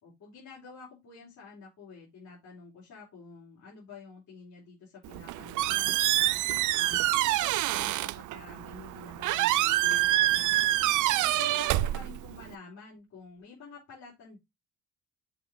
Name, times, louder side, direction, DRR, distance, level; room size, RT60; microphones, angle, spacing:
voice 1, 0.0-10.5 11.0-14.4, left 5 dB, 70° left, -6 dB, 4.1 m, -49 dB
Squeak, 5.1-12.5, right 15 dB, 85° right, 0.5 m, -27 dB
6.8 x 4.7 x 3.6 m, 0.19 s
cardioid pair, 90°, 30 cm